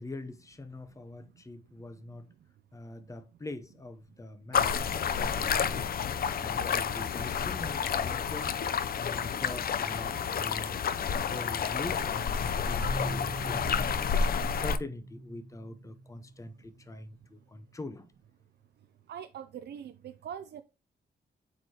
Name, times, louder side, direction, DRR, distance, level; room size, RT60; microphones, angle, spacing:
voice 1, 0.0-2.3 2.7-4.7 5.2-6.0 6.4-8.5 9.0-10.8 11.2-13.7 14.1-18.1, left 2 dB, 20° left, 0.7 m, -43 dB
sound 1, 4.5-14.8, left 7 dB, 60° left, 0.5 m, -30 dB
Marimba xylophone, 12.8-16.7, right 1 dB, 25° right, 1.1 m, -41 dB
voice 2, 19.1-20.6, right 8 dB, 80° right, 0.5 m, -42 dB
8.0 x 4.6 x 2.8 m
wide cardioid pair, 115°, 17 cm